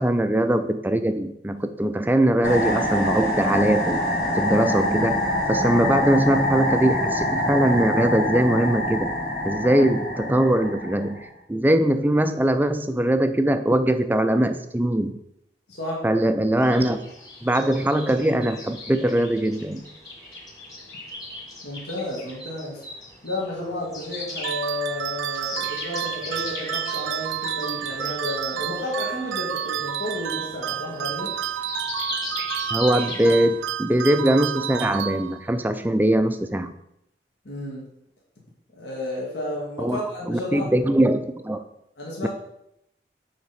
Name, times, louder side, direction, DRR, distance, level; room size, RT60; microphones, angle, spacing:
voice 1, 0.0-4.0 4.4-5.2 5.5-9.1 9.4-11.2 11.5-15.1 16.0-17.0 17.4-19.8 32.7-36.7 39.8-41.6, right 1 dB, 10° right, 8 dB, 0.4 m, -21 dB
sound 1, 2.4-11.3, left 1 dB, 50° left, 1.9 m, -25 dB
voice 2, 15.7-16.1 21.6-22.8 23.2-31.3 37.5-37.9 38.7-40.9 42.0-42.3, left 1 dB, 75° left, -4 dB, 1.8 m, -32 dB
sound 2, 16.6-33.7, left 1 dB, 20° left, 1.5 m, -38 dB
sound 3, 24.4-35.7, right 10 dB, 90° right, 0.3 m, -30 dB
6.1 x 4.0 x 5.8 m, 0.80 s
head